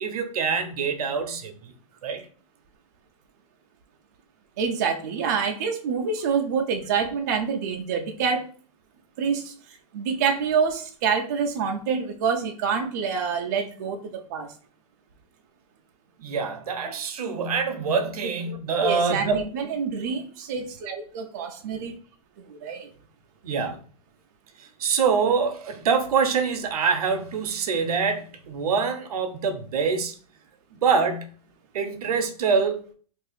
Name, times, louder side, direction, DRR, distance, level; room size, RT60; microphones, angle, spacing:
voice 1, 0.0-1.7 2.0-2.2 16.2-19.4 21.7-21.8 23.4-23.8 24.6-30.1 30.7-31.3 31.7-32.9, right 5 dB, 70° right, 0.7 m, -25 dB
voice 2, 4.6-8.5 9.2-14.5 18.8-21.9 22.5-22.9, right 6 dB, 30° right, 0.3 m, -27 dB
2.7 x 2.4 x 3.9 m
hypercardioid pair, 170°, 20 cm